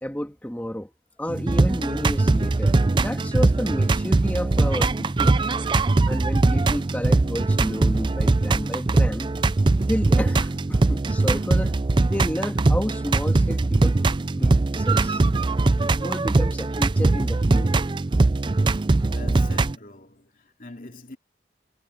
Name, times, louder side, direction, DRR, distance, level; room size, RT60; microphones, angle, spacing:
voice 1, 0.0-0.9 1.2-5.4 6.1-9.3 9.9-11.8 12.1-14.0 14.3-15.2 16.0-17.7, equal, 10° left, 1.6 m, -31 dB
sound 1, 1.3-19.7, right 2 dB, 25° right, 0.4 m, -21 dB
voice 2, 19.0-21.2, left 2 dB, 50° left, 2.5 m, -43 dB
head